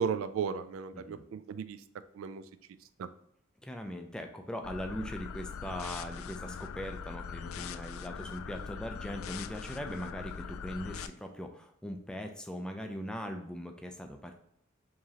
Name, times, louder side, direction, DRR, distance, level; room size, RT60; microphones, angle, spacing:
voice 1, 0.0-1.8 2.1-2.4 3.0-3.1, right 6 dB, 75° right, 12 dB, 0.3 m, -34 dB
voice 2, 0.9-1.3 3.6-14.4, equal, 5° left, 4 dB, 0.3 m, -40 dB
sound 1, 4.6-11.1, left 6 dB, 85° left, 0.3 m, -42 dB
4.6 x 3.1 x 2.8 m, 0.71 s
head